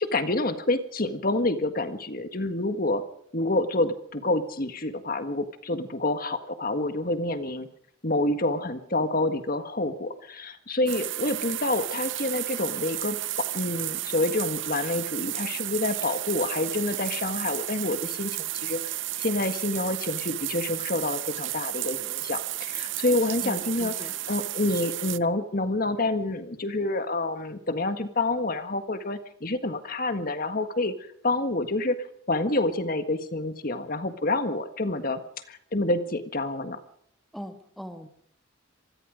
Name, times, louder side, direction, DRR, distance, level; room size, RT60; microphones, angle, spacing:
voice 1, 0.0-3.0 3.3-7.7 8.0-18.8 19.2-23.9 24.3-30.9 31.2-32.0 32.3-35.2 35.5-36.8, left 2 dB, 45° left, 9 dB, 1.7 m, -28 dB
sound 1, 10.9-25.2, right 15 dB, 65° right, 0.7 m, -33 dB
voice 2, 23.4-24.1 37.3-38.1, equal, ahead, 6 dB, 1.6 m, -40 dB
26.0 x 20.0 x 5.2 m, 0.66 s
head